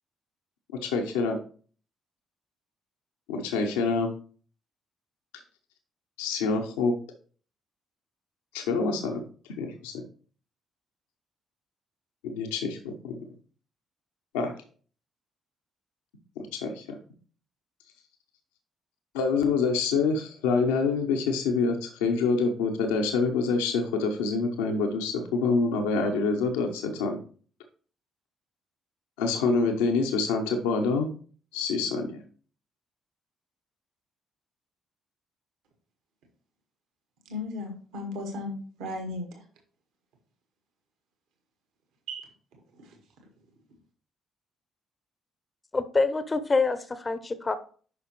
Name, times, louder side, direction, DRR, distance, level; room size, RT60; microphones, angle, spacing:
voice 1, 0.8-1.4 3.3-4.1 6.2-6.9 8.5-9.2 9.6-9.9 12.2-13.2 14.3-14.5 16.4-16.8 19.1-27.2 29.2-31.1 31.5-32.2, left 4 dB, 75° left, 0.9 m, -26 dB
voice 2, 37.3-39.4 42.1-42.3 42.8-42.9, left 2 dB, 65° right, 1.6 m, -36 dB
voice 3, 45.7-47.6, left 3 dB, 25° left, 0.8 m, -26 dB
9.6 x 5.7 x 3.1 m
figure-of-eight pair, 45°, 0 cm